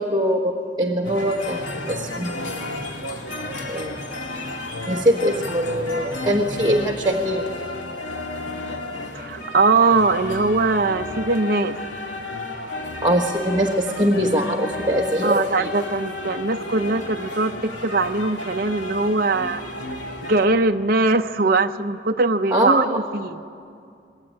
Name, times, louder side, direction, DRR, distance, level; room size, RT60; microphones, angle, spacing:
voice 1, 0.0-2.9 3.7-3.9 4.9-7.5 13.0-15.7 22.5-22.9, equal, 25° right, -1 dB, 1.4 m, -22 dB
sound 1, 1.0-20.5, left 2 dB, 80° left, 2.4 m, -32 dB
voice 2, 9.1-11.8 15.2-19.6 20.2-23.4, right 3 dB, 55° right, 6 dB, 0.7 m, -21 dB
25.0 x 20.5 x 9.6 m, 2.4 s
head